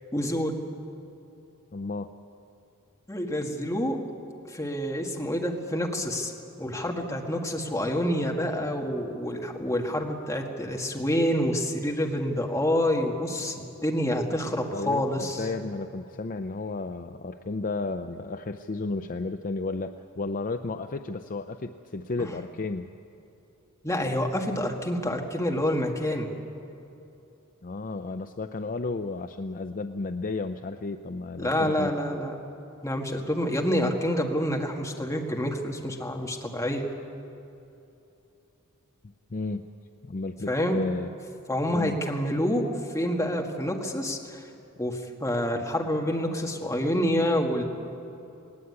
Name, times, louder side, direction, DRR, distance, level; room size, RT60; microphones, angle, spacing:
voice 1, 0.1-0.6 3.1-4.0 4.5-6.3 6.6-15.4 22.2-22.3 23.8-26.3 31.4-32.3 32.8-36.9 40.5-40.8 41.5-42.7 42.9-44.4 44.8-47.6, equal, 15° left, 1 dB, 1.8 m, -27 dB
voice 2, 1.7-2.1 14.7-22.9 27.6-31.9 39.3-39.7 40.0-41.1 41.7-42.0, left 3 dB, 40° left, 8 dB, 0.5 m, -33 dB
19.5 x 17.5 x 9.7 m, 2.9 s
head